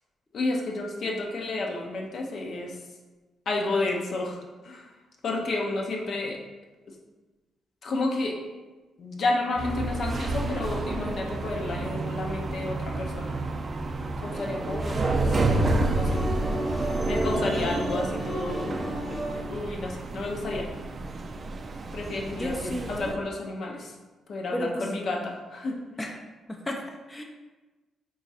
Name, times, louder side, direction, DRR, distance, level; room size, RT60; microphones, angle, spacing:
voice 1, 0.3-2.8 3.5-4.9 5.2-6.4 7.8-8.4 9.0-13.3 14.2-16.2 17.1-18.8 19.5-20.7 21.9-23.9 24.3-25.7, left 2 dB, 60° left, 0 dB, 0.7 m, -31 dB
sound 1, 9.6-23.1, right 2 dB, 45° right, 0.4 m, -30 dB
sound 2, 14.3-19.4, right 1 dB, 5° right, 1.1 m, -32 dB
voice 2, 22.3-23.2 24.5-25.0 26.0-26.2 26.5-27.2, left 1 dB, 20° left, 1 dB, 0.5 m, -33 dB
3.8 x 2.4 x 4.1 m, 1.2 s
supercardioid pair, 50°, 0 cm